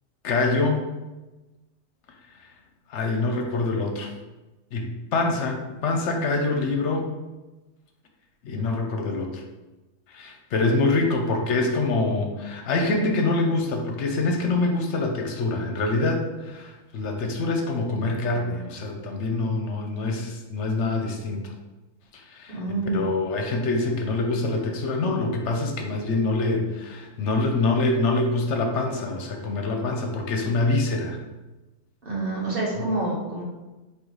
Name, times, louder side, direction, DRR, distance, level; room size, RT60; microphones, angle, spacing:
voice 1, 0.2-0.8 2.9-4.1 4.7-7.1 8.4-9.4 10.1-21.5 22.1-22.5 22.9-31.2, left 3 dB, 65° left, 3 dB, 1.0 m, -25 dB
voice 2, 22.5-23.0 32.0-33.4, right 2 dB, 45° right, -4 dB, 1.4 m, -27 dB
3.9 x 2.9 x 4.6 m, 1.1 s
omnidirectional pair, 1.4 m